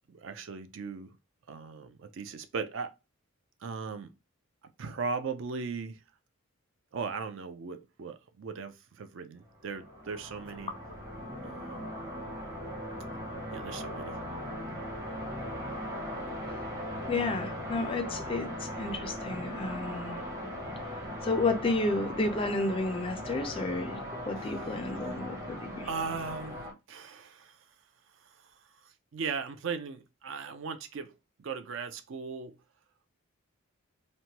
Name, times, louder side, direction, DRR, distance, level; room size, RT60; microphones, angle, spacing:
voice 1, 0.1-1.2 1.5-2.9 3.6-4.1 4.8-6.0 6.9-10.7 11.4-11.9 13.5-14.2 25.7-27.7 28.2-31.1 31.4-32.6, right 5 dB, 55° right, 0.4 m, -38 dB
sound 1, 9.5-26.7, equal, 15° right, 0.7 m, -39 dB
voice 2, 17.1-20.2 21.2-25.9, left 2 dB, 25° left, 0.4 m, -31 dB
3.0 x 2.1 x 2.8 m
head